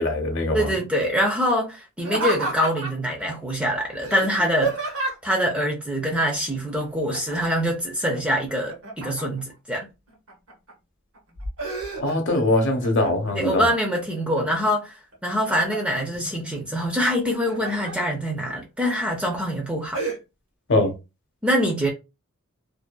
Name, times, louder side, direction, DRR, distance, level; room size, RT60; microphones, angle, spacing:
voice 1, 0.0-0.7 12.0-13.6 20.7-20.9, left 2 dB, 55° left, 0.7 m, -22 dB
voice 2, 0.5-4.9 5.2-9.9 13.3-14.9 15.2-20.0 21.4-21.9, equal, 5° right, 0.5 m, -24 dB
Laughter, 2.0-3.1 4.0-5.4 7.1-7.6 7.9-9.5 10.1-10.7 11.1-12.4 12.8-13.4 13.9-14.7 15.1-16.0 17.1-17.9 18.5-18.6 19.1-19.4 19.9-20.2, right 2 dB, 65° right, 1.0 m, -30 dB
2.6 x 2.3 x 2.2 m
head